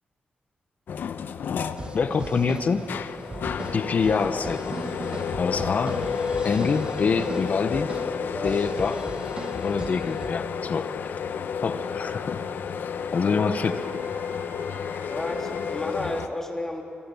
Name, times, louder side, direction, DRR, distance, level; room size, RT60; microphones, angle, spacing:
sound 1, 0.9-16.3, left 7 dB, 85° left, 0.9 m, -31 dB
sound 2, 1.7-10.4, right 3 dB, 30° right, 1.0 m, -38 dB
voice 1, 1.9-2.9 3.7-4.8 5.4-6.0 6.4-7.9 8.4-9.1 9.6-11.1 11.6-12.4 13.1-13.8, left 5 dB, 50° left, 9 dB, 1.0 m, -25 dB
voice 2, 8.2-8.7 15.0-16.8, left 1 dB, 15° left, 1 dB, 3.2 m, -32 dB
sound 3, 10.9-15.7, equal, 75° right, 2.3 m, -50 dB
27.0 x 25.5 x 7.0 m, 2.7 s
wide cardioid pair, 155°, 3 cm